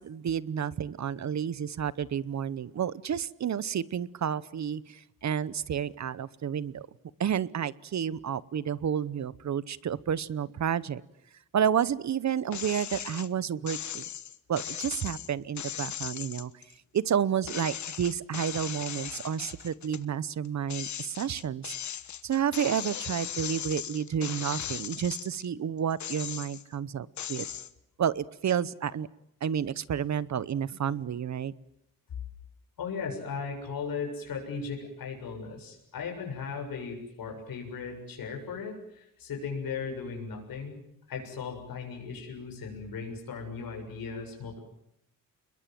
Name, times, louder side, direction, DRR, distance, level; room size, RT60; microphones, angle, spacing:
voice 1, 0.0-6.9 7.2-11.0 11.5-14.0 14.5-16.6 16.9-21.7 22.2-27.5 28.0-29.1 29.4-31.5, right 8 dB, 55° right, 19 dB, 0.9 m, -30 dB
sound 1, 12.5-13.3 13.7-17.1 17.5-20.0 20.4-25.5 25.9-26.7 27.2-27.7, left 9 dB, 55° left, 1.3 m, -38 dB
voice 2, 32.8-40.8 41.1-44.6, left 5 dB, 80° left, 2 dB, 7.2 m, -37 dB
29.0 x 22.0 x 7.7 m, 0.81 s
wide cardioid pair, 150°, 34 cm